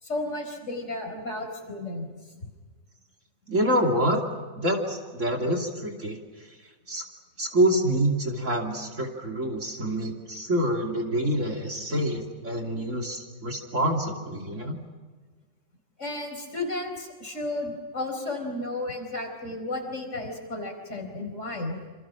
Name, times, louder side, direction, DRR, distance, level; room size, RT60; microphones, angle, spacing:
voice 1, 0.0-2.1 2.4-2.5 16.0-21.8, left 2 dB, 40° left, 4 dB, 4.8 m, -33 dB
voice 2, 3.5-4.2 4.6-6.2 6.9-7.0 7.4-14.8, right 1 dB, 45° right, 1 dB, 3.2 m, -26 dB
28.0 x 27.0 x 6.2 m, 1.5 s
omnidirectional pair, 1.9 m